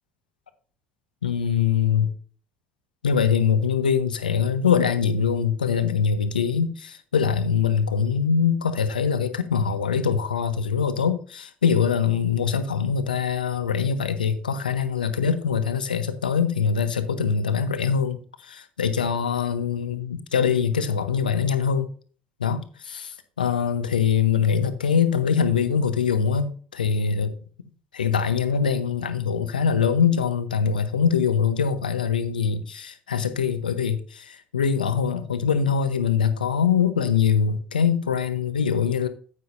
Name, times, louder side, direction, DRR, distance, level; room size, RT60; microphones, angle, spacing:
voice 1, 1.2-2.1 3.0-18.2 18.4-21.9 22.4-27.3 27.9-39.1, left 7 dB, 85° left, 0.8 m, -23 dB
9.7 x 9.3 x 2.6 m
figure-of-eight pair, 55°, 5 cm